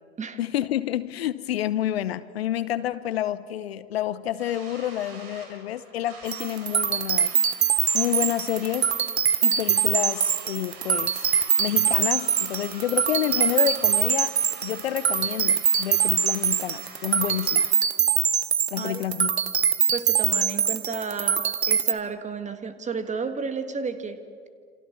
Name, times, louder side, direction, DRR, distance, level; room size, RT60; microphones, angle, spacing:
voice 1, 0.4-7.3 7.9-8.9 9.4-11.3 11.6-14.3 14.6-17.7 18.7-19.3, left 12 dB, 70° left, 16 dB, 0.9 m, -29 dB
sound 1, 4.4-17.7, right 4 dB, 60° right, 4.9 m, -45 dB
sound 2, 6.3-21.9, right 8 dB, 80° right, 1.0 m, -23 dB
voice 2, 19.9-24.2, right 5 dB, 20° right, 10 dB, 1.8 m, -32 dB
28.0 x 27.0 x 7.1 m, 2.2 s
figure-of-eight pair, 70°, 32 cm